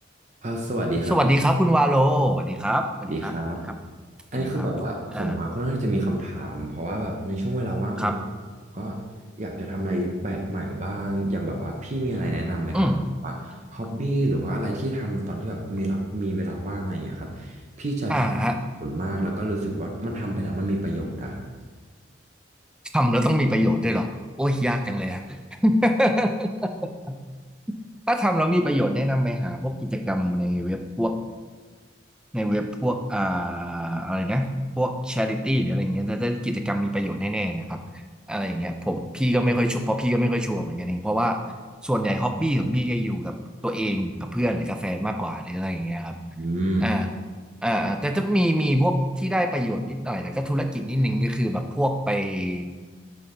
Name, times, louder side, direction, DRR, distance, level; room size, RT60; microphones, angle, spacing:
voice 1, 0.4-1.2 3.1-3.6 4.3-8.2 8.7-9.0 9.4-12.9 13.2-18.4 18.8-21.5 46.4-46.9, right 1 dB, 35° right, 0 dB, 0.7 m, -28 dB
voice 2, 1.1-3.3 3.7-3.8 4.3-4.7 5.1-5.4 8.0-8.2 12.7-13.0 18.1-18.6 22.9-24.1 24.4-27.2 28.1-31.2 32.3-34.5 34.8-37.8 38.3-41.4 41.8-43.4 43.6-46.2 46.8-47.1 47.6-52.7, equal, 5° right, 5 dB, 0.3 m, -24 dB
6.7 x 5.3 x 3.8 m, 1.4 s
head